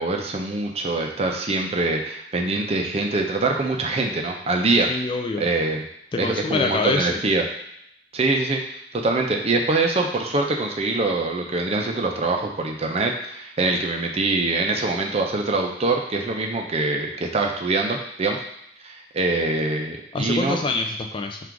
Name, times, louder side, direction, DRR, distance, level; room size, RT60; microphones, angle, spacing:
voice 1, 0.0-4.9 5.4-5.9 6.2-7.4 8.1-8.6 8.9-18.4 18.8-20.6, right 2 dB, 35° right, 2 dB, 0.5 m, -24 dB
voice 2, 4.9-5.4 6.1-7.2 20.1-21.4, left 3 dB, 30° left, 4 dB, 0.3 m, -25 dB
3.7 x 2.5 x 4.5 m, 0.76 s
head